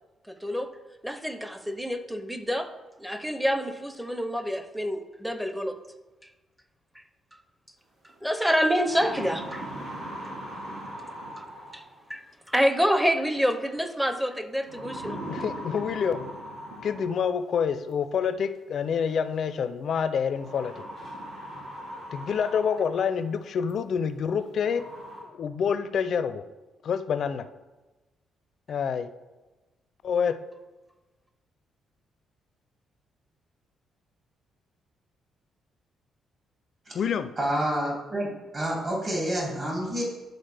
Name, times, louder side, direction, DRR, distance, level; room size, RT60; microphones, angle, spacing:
voice 1, 0.3-0.7 1.0-2.7 3.0-5.8 8.2-9.7 10.2-10.3 11.4-11.5 11.7-11.8 12.1-12.2 12.5-15.2, equal, 5° right, 8 dB, 0.6 m, -27 dB
sound 1, 8.1-8.2 8.6-12.1 13.5-13.9 14.7-17.5 18.7-18.8 20.3-23.2 23.7-23.8 24.3-24.4 24.7-25.2, equal, 65° right, 2.0 m, -39 dB
voice 2, 15.3-16.3 16.8-20.8 22.1-24.8 25.2-26.4 26.8-27.5 28.7-29.1 30.0-30.4 36.9-37.3, left 7 dB, 60° left, 12 dB, 0.4 m, -27 dB
voice 3, 37.4-40.0, right 1 dB, 40° right, -3 dB, 2.4 m, -28 dB
10.5 x 3.9 x 3.4 m, 1.2 s
cardioid pair, 90°, 0 cm